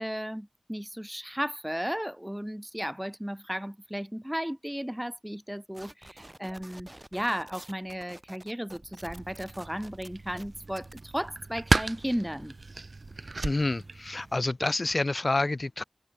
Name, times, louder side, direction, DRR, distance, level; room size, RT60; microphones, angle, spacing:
voice 1, 0.0-12.5, equal, 5° right, 0.6 m, -34 dB
sound 1, 5.7-11.0, right 1 dB, 25° right, 1.0 m, -50 dB
sound 2, 9.0-14.4, right 3 dB, 70° right, 0.4 m, -34 dB
voice 2, 13.4-15.8, left 2 dB, 50° left, 0.3 m, -28 dB
wide cardioid pair, 55°, 0 cm